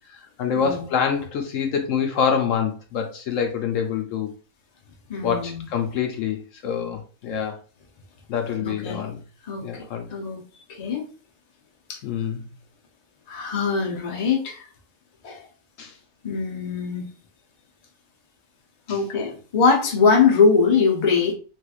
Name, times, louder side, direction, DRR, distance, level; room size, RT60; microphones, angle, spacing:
voice 1, 0.4-4.3 5.2-7.6 8.3-9.2 9.6-10.1 12.0-12.4 15.8-15.9 18.9-19.0, left 7 dB, 70° left, 0.9 m, -26 dB
voice 2, 5.1-5.6 8.6-9.0 9.5-9.6 10.1-10.4 10.8-11.0 11.9-12.0 13.3-14.6 15.2-15.4 16.2-17.1 18.9-21.3, left 5 dB, 40° left, 0.6 m, -21 dB
3.2 x 3.1 x 2.3 m
omnidirectional pair, 1.5 m